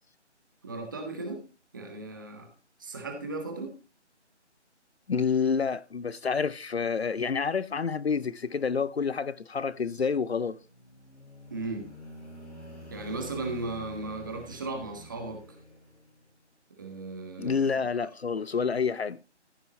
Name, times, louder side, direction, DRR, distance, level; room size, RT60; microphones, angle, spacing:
voice 1, 0.6-1.4 1.7-2.5 2.8-3.8 11.5-11.9 12.9-15.6 16.8-17.9, right 2 dB, 15° right, 1.4 m, -36 dB
voice 2, 5.1-10.6 17.4-19.2, left 5 dB, 60° left, 0.6 m, -28 dB
sound 1, 10.5-16.3, equal, 75° left, 5.8 m, -47 dB
15.0 x 5.5 x 4.2 m
figure-of-eight pair, 170°, 35 cm